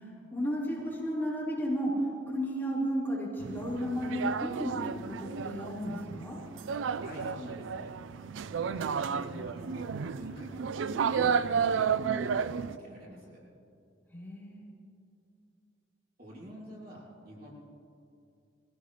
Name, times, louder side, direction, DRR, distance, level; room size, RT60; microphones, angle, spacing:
voice 1, 0.0-4.8 5.1-6.4 14.1-14.7, equal, 10° left, -8 dB, 4.5 m, -33 dB
sound 1, 3.4-12.8, right 6 dB, 75° right, 0.4 m, -32 dB
voice 2, 6.8-7.9 8.5-9.9 10.1-13.4 16.2-17.5, equal, 50° right, -5 dB, 3.1 m, -46 dB
21.5 x 16.5 x 3.3 m, 2.6 s
head